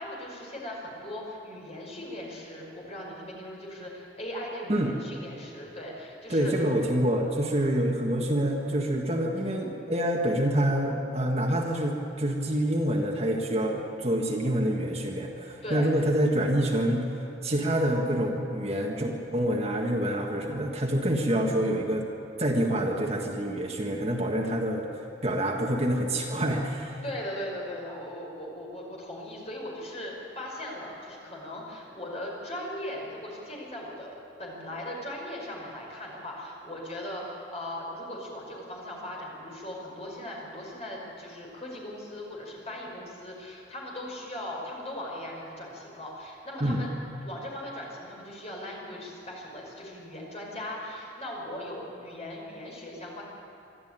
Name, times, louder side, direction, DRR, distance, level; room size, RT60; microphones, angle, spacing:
voice 1, 0.0-6.5 9.4-9.6 15.6-15.9 27.0-47.0 47.2-53.2, left 1 dB, 35° left, -2 dB, 5.2 m, -39 dB
voice 2, 6.3-17.0 17.4-22.1 22.4-24.9 25.2-27.0 46.6-46.8, right 1 dB, 35° right, 0 dB, 1.7 m, -27 dB
24.0 x 13.0 x 9.1 m, 2.8 s
head